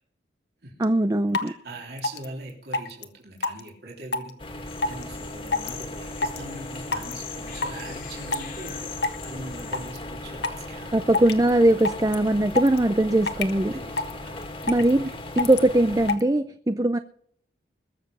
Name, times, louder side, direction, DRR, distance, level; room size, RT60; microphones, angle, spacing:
sound 1, 0.8-0.9 1.3-1.5 2.0-2.3 2.7-3.0 3.4-3.7 4.1-4.3 4.8-5.0 5.5-5.8 6.2-6.4 6.9-7.1 7.6-7.8 8.3-8.7 9.0-9.2 9.6-10.0 10.4-10.6 11.1-11.5 11.8-12.1 12.5-12.8 13.3-13.5 14.0-14.1 14.4-14.9 15.4-15.6 16.1-16.2, left 3 dB, 70° left, 1.5 m, -25 dB
voice 1, 0.8-1.5 10.9-13.7 14.7-15.1 15.4-17.0, right 1 dB, 20° right, 10 dB, 0.5 m, -21 dB
voice 2, 1.4-4.4 4.9-8.9 9.2-11.0 13.7-15.2, right 1 dB, 60° right, -2 dB, 3.5 m, -41 dB
sound 2, 4.4-16.2, left 1 dB, 30° left, 2.0 m, -38 dB
sound 3, 4.7-9.9, left 8 dB, 50° left, 2.2 m, -43 dB
21.5 x 7.5 x 5.5 m, 0.63 s
head